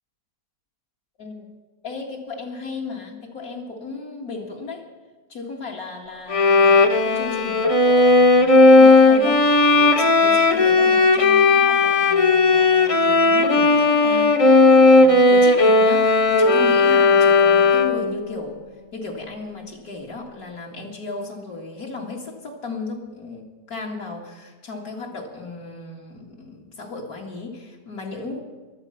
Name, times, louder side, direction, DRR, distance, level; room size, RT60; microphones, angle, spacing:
voice 1, 1.2-1.5 1.8-4.9 5.3-18.6 18.9-28.4, left 3 dB, 60° left, -1 dB, 2.5 m, -35 dB
Bowed string instrument, 6.3-18.1, left 3 dB, 40° left, 0.5 m, -15 dB
19.0 x 12.5 x 5.7 m, 1.3 s
omnidirectional pair, 1.8 m